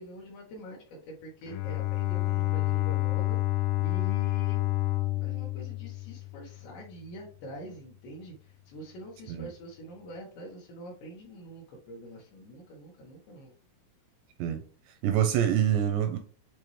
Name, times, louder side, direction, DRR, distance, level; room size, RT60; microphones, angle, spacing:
voice 1, 0.0-4.7 5.1-13.5, equal, 70° left, 3.4 m, -45 dB
Bowed string instrument, 1.4-6.7, left 18 dB, 85° left, 2.6 m, -29 dB
voice 2, 15.0-16.2, right 10 dB, 85° right, 2.5 m, -25 dB
8.4 x 3.6 x 3.2 m
omnidirectional pair, 5.5 m